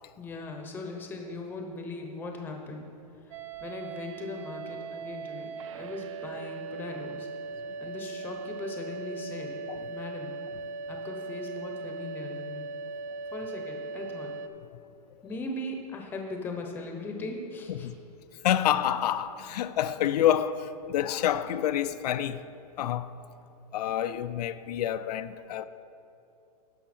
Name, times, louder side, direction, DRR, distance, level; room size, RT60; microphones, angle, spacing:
voice 1, 0.2-2.9 3.6-7.3 7.8-9.6 9.9-10.3 10.9-12.7 13.3-14.3 15.2-17.9, left 2 dB, 10° left, 0.7 m, -39 dB
sound 1, 3.3-14.5, right 4 dB, 55° right, 0.4 m, -39 dB
voice 2, 18.4-22.4 22.8-23.2 23.7-25.7, left 11 dB, 90° left, 0.5 m, -28 dB
12.0 x 5.6 x 4.3 m
supercardioid pair, 165°, 20 cm